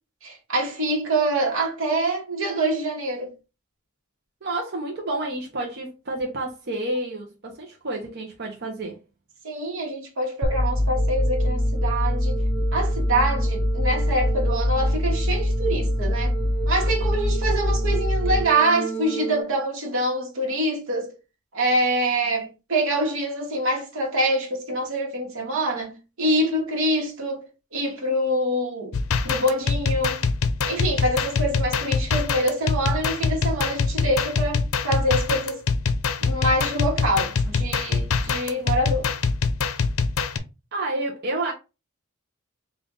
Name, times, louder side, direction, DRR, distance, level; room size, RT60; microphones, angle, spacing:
voice 1, 0.2-3.3 9.4-12.4 12.7-16.3 16.7-21.1 21.5-27.5 27.7-29.0 29.2-30.2 30.7-35.6 36.2-39.1, right 1 dB, 70° right, 1.2 m, -25 dB
voice 2, 4.4-9.0 40.7-41.5, right 2 dB, 50° right, 0.7 m, -29 dB
sound 1, 10.4-19.4, equal, 10° left, 0.4 m, -24 dB
sound 2, 28.9-40.4, left 5 dB, 75° left, 0.5 m, -24 dB
3.5 x 2.5 x 3.8 m
head